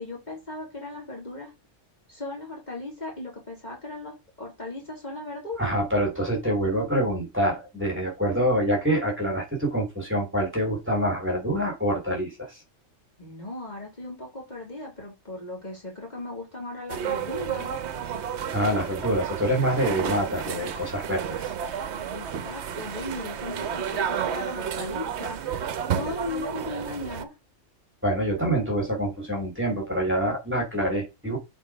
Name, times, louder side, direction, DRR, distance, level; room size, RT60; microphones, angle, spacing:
voice 1, 0.0-1.5 2.1-5.7 13.2-17.7 22.1-25.4 25.9-27.3, left 2 dB, 35° left, 2.6 m, -37 dB
voice 2, 5.6-12.6 18.5-21.5 28.0-31.4, right 1 dB, 10° right, 3.4 m, -26 dB
sound 1, 16.9-27.2, right 8 dB, 65° right, 1.0 m, -31 dB
7.4 x 4.6 x 4.9 m
omnidirectional pair, 1.3 m